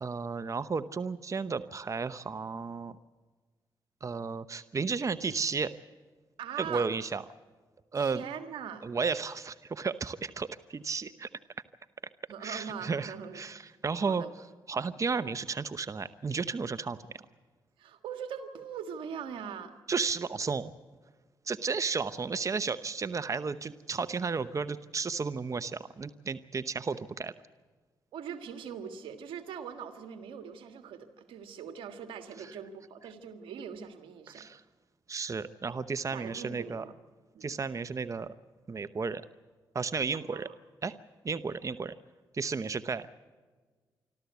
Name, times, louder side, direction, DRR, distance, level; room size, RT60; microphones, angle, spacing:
voice 1, 0.0-3.0 4.0-5.7 6.6-7.2 7.9-8.2 8.8-11.3 12.4-14.2 14.7-17.2 19.9-20.7 21.4-27.3 32.4-32.5 34.3-34.6 35.1-36.8 37.4-38.3 38.7-39.2 39.7-40.5 40.8-41.0 41.2-41.9 42.3-43.1, right 5 dB, 40° right, 13 dB, 0.8 m, -33 dB
voice 2, 6.4-6.9 7.9-8.9 12.3-13.4 14.0-14.3 17.8-19.8 28.1-34.5 36.1-36.9 37.3-37.5 40.3-40.5, right 7 dB, 90° right, 7 dB, 1.7 m, -41 dB
26.5 x 13.0 x 8.2 m, 1.4 s
cardioid pair, 60°, 9 cm